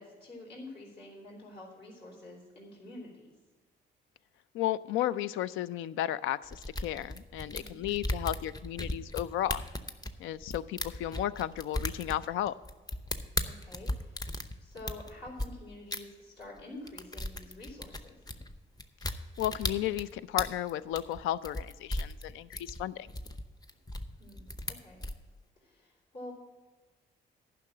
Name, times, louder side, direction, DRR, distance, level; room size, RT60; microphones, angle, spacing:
voice 1, 0.0-3.3 7.5-7.8 13.4-14.2 14.6-18.1 24.2-25.0 25.6-26.3, left 1 dB, 60° left, -3 dB, 3.4 m, -48 dB
voice 2, 4.5-9.6 10.2-12.5 19.4-23.1, left 12 dB, 85° left, 17 dB, 0.4 m, -33 dB
sound 1, 6.5-15.5 15.9-16.0 16.4-16.6 16.9-25.2, left 1 dB, 20° left, 0.7 m, -36 dB
10.5 x 5.7 x 7.4 m, 1.3 s
cardioid pair, 90°, 20 cm